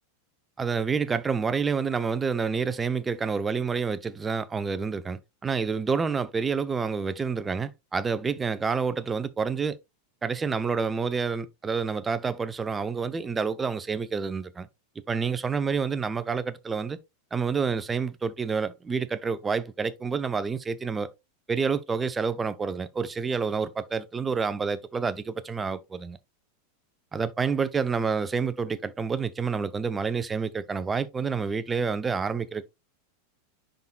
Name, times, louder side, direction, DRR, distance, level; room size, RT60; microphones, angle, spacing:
voice 1, 0.6-9.8 10.2-14.7 15.1-17.0 17.3-21.1 21.5-26.2 27.1-32.7, right 5 dB, 20° right, 0.7 m, -28 dB
10.5 x 3.9 x 2.3 m
hypercardioid pair, 90°, 0 cm